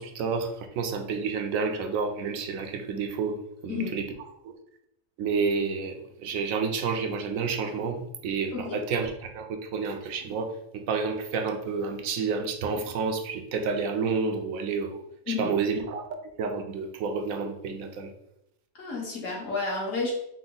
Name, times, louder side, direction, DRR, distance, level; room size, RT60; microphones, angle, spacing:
voice 1, 0.0-4.1 4.4-4.5 5.2-16.1 16.4-18.1, right 5 dB, 75° right, 5 dB, 1.0 m, -30 dB
voice 2, 18.7-20.1, left 4 dB, 65° left, -2 dB, 1.6 m, -31 dB
5.4 x 2.1 x 3.9 m, 0.80 s
omnidirectional pair, 1.5 m